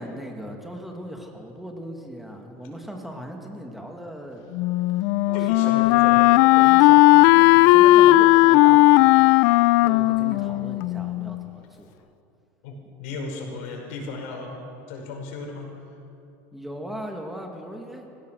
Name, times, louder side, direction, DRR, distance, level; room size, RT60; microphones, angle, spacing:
voice 1, 0.0-4.5 5.0-6.0 6.5-9.2 9.8-11.9 16.5-18.1, equal, ahead, 2 dB, 2.0 m, -38 dB
Wind instrument woodwind instrument, 4.5-11.4, left 18 dB, 65° left, 0.4 m, -16 dB
voice 2, 5.3-6.4 12.6-14.5 14.9-15.7, left 3 dB, 80° left, 2 dB, 5.5 m, -35 dB
26.5 x 17.0 x 6.4 m, 2.7 s
cardioid pair, 145°, 7 cm